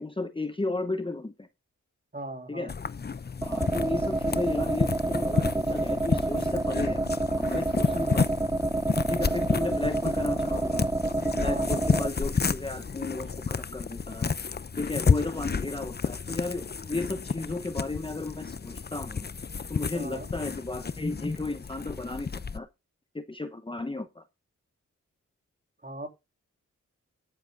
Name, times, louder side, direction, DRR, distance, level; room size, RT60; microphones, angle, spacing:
voice 1, 0.0-1.5 2.5-2.7 3.4-7.0 7.4-8.3 9.1-10.9 11.4-14.3 14.8-19.3 19.7-22.7 23.1-24.2, left 2 dB, 15° left, 1.0 m, -34 dB
voice 2, 2.1-2.7 7.8-8.2 11.4-11.9 19.9-20.3 25.8-26.1, right 2 dB, 30° right, 3.4 m, -39 dB
sound 1, 2.7-22.6, left 5 dB, 30° left, 0.7 m, -31 dB
sound 2, 3.4-12.1, right 2 dB, 10° right, 0.8 m, -28 dB
11.0 x 10.0 x 3.8 m
cardioid pair, 60°, 31 cm